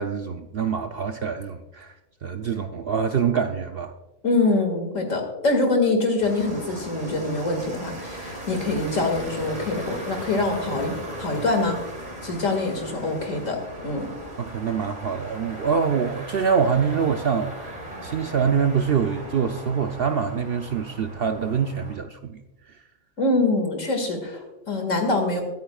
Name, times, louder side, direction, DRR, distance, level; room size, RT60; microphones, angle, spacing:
voice 1, 0.0-1.9 2.2-3.9 14.4-17.7 18.0-22.4, right 6 dB, 60° right, 6 dB, 0.7 m, -25 dB
voice 2, 4.2-11.8 12.2-14.1 23.2-25.4, left 2 dB, 70° left, 4 dB, 2.4 m, -24 dB
sound 1, 6.2-22.0, right 1 dB, 30° right, 2.6 m, -38 dB
21.5 x 9.1 x 2.3 m, 1.0 s
omnidirectional pair, 1.4 m